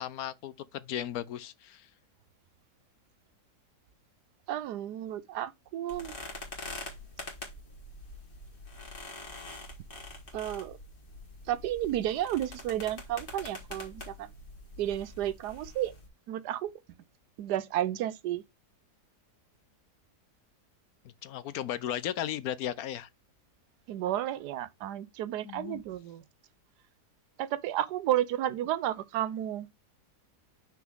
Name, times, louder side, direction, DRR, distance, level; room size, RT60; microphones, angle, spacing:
voice 1, 0.0-1.9 21.2-23.1 25.4-25.8, left 11 dB, 75° left, 1.0 m, -35 dB
voice 2, 4.5-6.2 10.3-10.8 11.5-14.3 14.8-15.9 16.3-16.7 17.4-18.4 23.9-26.2 27.4-29.7, right 12 dB, 85° right, 1.2 m, -32 dB
sound 1, 5.9-16.1, left 2 dB, 35° left, 1.9 m, -45 dB
6.0 x 4.5 x 3.6 m
omnidirectional pair, 1.7 m